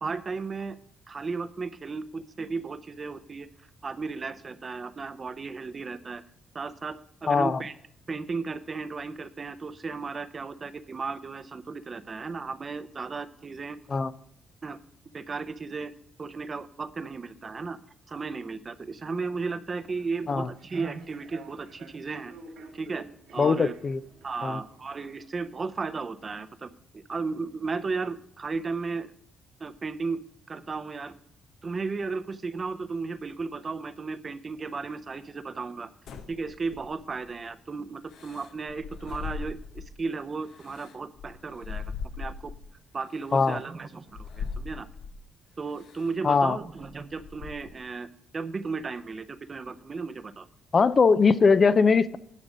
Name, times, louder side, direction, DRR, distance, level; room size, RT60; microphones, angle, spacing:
voice 1, 0.0-0.8 1.1-3.5 3.8-6.2 6.5-7.7 8.1-14.0 14.6-14.8 15.1-15.9 16.2-17.8 18.1-22.3 22.7-23.0 23.3-23.7 24.2-29.1 29.6-31.2 31.6-35.9 36.3-42.5 42.9-44.9 45.6-50.5, right 4 dB, 35° right, 13 dB, 0.6 m, -35 dB
voice 2, 7.3-7.6 13.9-14.1 20.3-20.5 23.4-24.0 24.4-24.6 43.3-43.6 46.2-46.6 50.7-52.2, left 5 dB, 40° left, 14 dB, 0.5 m, -21 dB
Human voice / Subway metro underground, 19.8-25.3, right 4 dB, 80° right, 2.5 m, -50 dB
sound 1, 36.1-37.3 38.1-40.0 40.5-42.7 43.4-43.5 44.1-45.2 45.8-46.1 46.5-47.9, left 5 dB, 75° left, 0.8 m, -40 dB
10.5 x 5.2 x 6.2 m, 0.70 s
cardioid pair, 90°, 0 cm